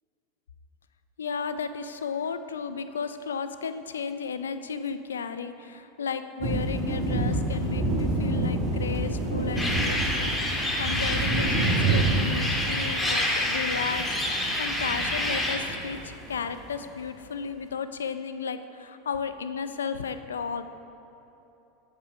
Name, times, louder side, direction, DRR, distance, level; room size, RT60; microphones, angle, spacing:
voice 1, 1.2-20.6, left 6 dB, 90° left, 10 dB, 0.4 m, -34 dB
sound 1, 6.4-16.5, right 2 dB, 40° right, 1.4 m, -29 dB
sound 2, 9.6-15.6, left 1 dB, 15° left, 1.6 m, -28 dB
8.5 x 5.6 x 5.8 m, 3.0 s
hypercardioid pair, 95°, 0 cm